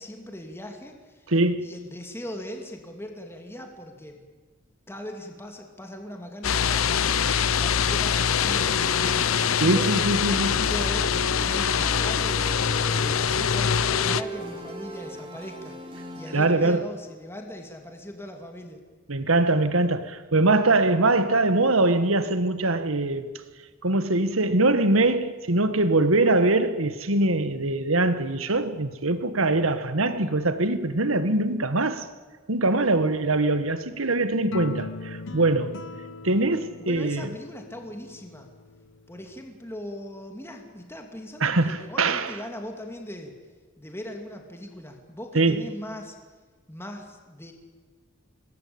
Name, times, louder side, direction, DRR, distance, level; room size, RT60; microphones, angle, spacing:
voice 1, 0.0-1.3 1.6-4.3 4.9-9.9 10.4-12.5 12.8-18.8 36.8-38.5 39.1-43.4 43.8-46.2 46.7-47.5, left 1 dB, 10° left, 2.7 m, -39 dB
voice 2, 1.3-1.7 9.6-10.7 16.3-16.8 19.1-23.3 23.8-32.1 32.5-35.8 36.2-37.3 41.4-42.3 45.3-45.6, right 2 dB, 85° right, 1.7 m, -23 dB
sound 1, 6.4-14.2, left 7 dB, 90° left, 0.8 m, -24 dB
sound 2, 8.4-16.5, right 1 dB, 25° right, 4.6 m, -39 dB
sound 3, 34.5-38.9, left 3 dB, 65° left, 1.1 m, -40 dB
26.5 x 20.0 x 8.8 m
head